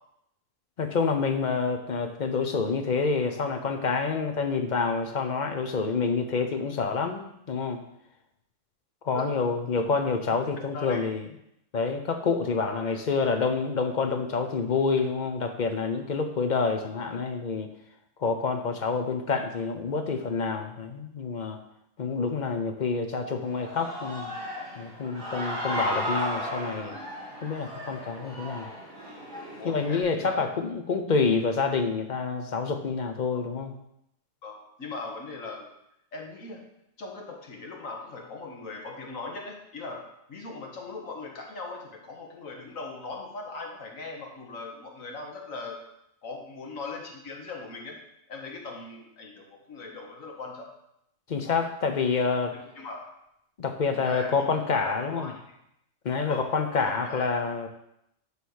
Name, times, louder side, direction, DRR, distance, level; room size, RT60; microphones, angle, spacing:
voice 1, 0.8-7.8 9.0-11.3 11.7-17.7 18.2-21.6 22.0-24.3 24.8-27.0 27.4-28.7 29.6-33.7 51.3-52.5 53.6-55.3 56.0-57.7, left 4 dB, 45° left, 6 dB, 0.6 m, -27 dB
voice 2, 10.7-11.1 12.7-13.0 29.6-30.4 33.3-33.5 34.4-35.7 36.1-36.6 37.0-40.0 40.3-45.8 46.2-48.0 48.3-50.7 52.5-53.1 54.0-54.5 54.7-55.6 56.2-57.4, left 3 dB, 75° left, 1 dB, 1.7 m, -39 dB
Human voice / Cheering, 23.4-30.0, equal, 30° right, 3.1 m, -35 dB
9.7 x 3.3 x 6.3 m, 0.79 s
omnidirectional pair, 1.4 m